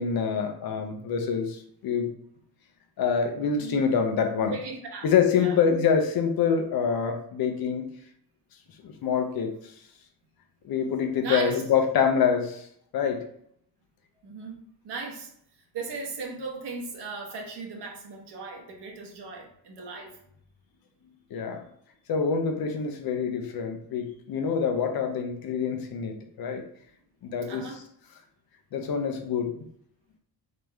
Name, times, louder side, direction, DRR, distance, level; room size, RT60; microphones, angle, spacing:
voice 1, 0.0-2.1 3.0-4.5 5.0-7.9 8.8-9.6 10.6-12.7 12.9-13.3 21.3-21.6 22.1-26.6 27.2-27.6 28.7-29.5, left 6 dB, 60° left, 5 dB, 0.8 m, -26 dB
voice 2, 4.5-5.1 5.3-5.6 11.2-11.6 14.2-14.5 14.8-15.3 15.7-20.1 27.5-27.8, right 4 dB, 70° right, 0 dB, 1.3 m, -37 dB
3.8 x 3.5 x 3.4 m, 0.67 s
cardioid pair, 135°, 42 cm